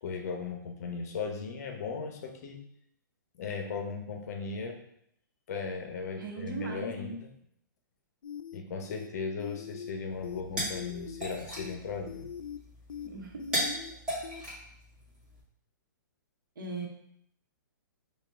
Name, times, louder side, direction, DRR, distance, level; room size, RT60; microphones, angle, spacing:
voice 1, 0.0-2.6 3.4-4.8 5.5-7.3 8.5-12.3, left 5 dB, 50° left, 4 dB, 0.8 m, -37 dB
voice 2, 6.2-7.2 13.0-13.8 16.6-16.9, right 3 dB, 75° right, 2 dB, 1.0 m, -39 dB
sound 1, 8.2-8.6 8.9-9.1 9.4-9.9 10.2-10.4 10.7-11.2 11.6-11.7 12.1-12.6 12.9-13.1 13.4-13.9 14.2-14.4, left 8 dB, 85° left, 0.4 m, -42 dB
sound 2, 10.1-15.4, equal, 5° right, 1.7 m, -38 dB
5.3 x 2.4 x 3.6 m, 0.71 s
hypercardioid pair, 160°, 11 cm